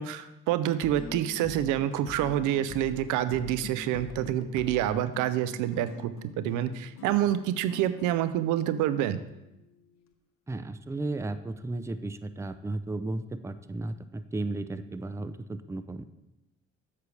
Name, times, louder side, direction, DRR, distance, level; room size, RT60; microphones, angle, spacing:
voice 1, 0.0-9.2, right 11 dB, 80° right, 13 dB, 0.5 m, -27 dB
sound 1, 0.7-10.1, left 5 dB, 60° left, 0.8 m, -45 dB
voice 2, 10.5-16.0, right 2 dB, 10° right, 12 dB, 0.5 m, -34 dB
8.3 x 6.6 x 3.3 m, 0.93 s
supercardioid pair, 60°, 30 cm